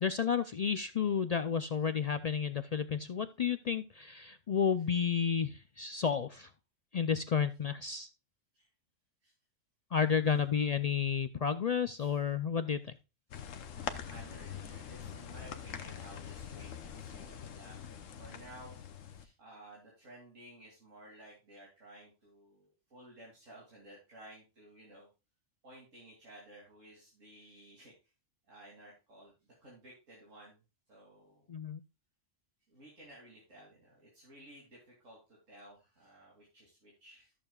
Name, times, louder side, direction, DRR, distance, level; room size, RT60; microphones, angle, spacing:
voice 1, 0.0-6.5 6.9-8.1 9.9-13.0 31.5-31.8, left 7 dB, 70° left, 11 dB, 0.3 m, -31 dB
voice 2, 10.0-10.8 12.0-12.2 13.3-13.5 13.7-18.8 19.1-25.1 25.6-28.1 28.5-30.6 30.9-31.5 32.7-37.3, right 1 dB, 85° right, -4 dB, 3.2 m, -55 dB
sound 1, 13.3-19.3, left 8 dB, 90° left, 1.3 m, -44 dB
13.5 x 6.9 x 2.3 m, 0.29 s
omnidirectional pair, 1.3 m